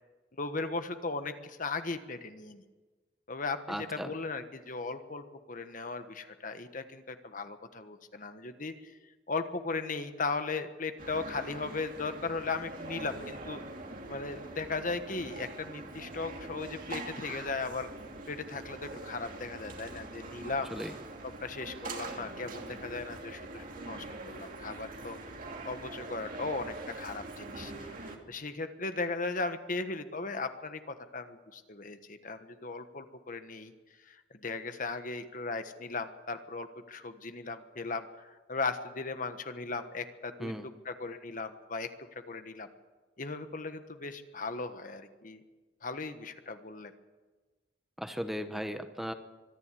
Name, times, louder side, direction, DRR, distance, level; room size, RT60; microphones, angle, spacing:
voice 1, 0.4-2.6 3.3-8.9 9.3-13.6 14.1-17.9 18.3-20.7 21.2-25.2 25.6-33.7 34.1-41.9 42.3-42.7 43.2-45.4 45.8-46.9, left 3 dB, 45° left, 9 dB, 1.3 m, -37 dB
voice 2, 3.7-4.1 20.7-20.9 40.4-40.6 48.0-49.1, equal, ahead, 7 dB, 0.9 m, -36 dB
sound 1, 11.0-28.2, right 2 dB, 50° right, 2.6 m, -43 dB
24.5 x 10.5 x 9.9 m, 1.3 s
head